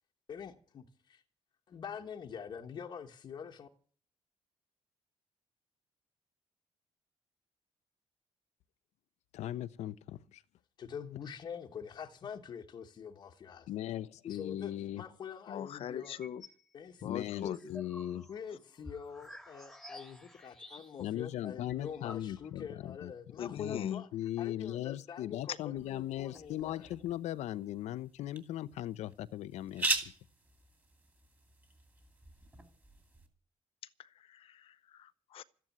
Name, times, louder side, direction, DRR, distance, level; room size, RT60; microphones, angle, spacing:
voice 1, 0.3-1.2 1.7-3.7 10.8-13.7 14.2-16.2 16.7-17.0 17.4-17.6 18.3-24.1 24.4-26.9, left 7 dB, 40° left, 1.2 m, -45 dB
voice 2, 9.3-10.4 13.7-15.0 17.0-18.3 21.0-23.1 23.6-30.1, left 13 dB, 90° left, 0.7 m, -38 dB
voice 3, 15.5-16.4 17.0-17.8 23.4-24.0 34.0-35.4, left 10 dB, 55° left, 0.7 m, -40 dB
sound 1, 16.0-16.6 17.0-21.2 21.4-21.5 21.7-22.7, left 1 dB, ahead, 1.7 m, -51 dB
sound 2, 25.8-33.3, right 3 dB, 15° right, 2.5 m, -41 dB
13.5 x 10.0 x 9.2 m
cardioid pair, 175°, 11 cm